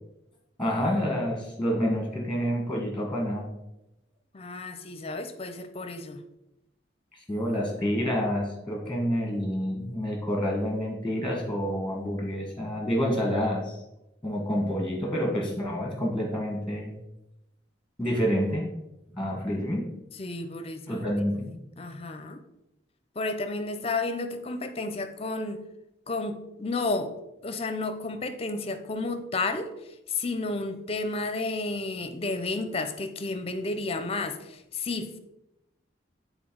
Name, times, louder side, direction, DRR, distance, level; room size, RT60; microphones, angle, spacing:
voice 1, 0.6-3.5 7.1-13.8 14.2-17.0 18.0-18.7 19.1-19.9 20.9-21.5, equal, 5° left, 0 dB, 1.4 m, -28 dB
voice 2, 4.3-6.2 20.2-22.4 23.2-25.6 26.1-27.2 27.4-29.7 30.1-35.2, left 3 dB, 35° left, 8 dB, 0.6 m, -32 dB
8.4 x 4.0 x 4.7 m, 0.91 s
head